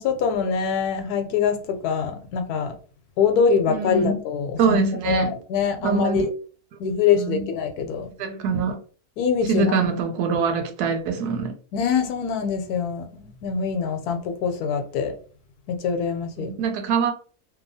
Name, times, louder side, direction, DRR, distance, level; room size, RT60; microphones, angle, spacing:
voice 1, 0.0-2.7 3.2-4.8 5.1-6.3 6.8-8.1 9.2-9.8 11.7-15.1 15.7-16.5, left 6 dB, 85° left, 1.1 m, -24 dB
voice 2, 3.7-4.2 4.6-5.4 5.8-6.2 7.1-7.5 8.2-8.8 9.4-11.5 16.4-17.1, right 5 dB, 90° right, 1.2 m, -24 dB
2.9 x 2.3 x 2.6 m
omnidirectional pair, 1.6 m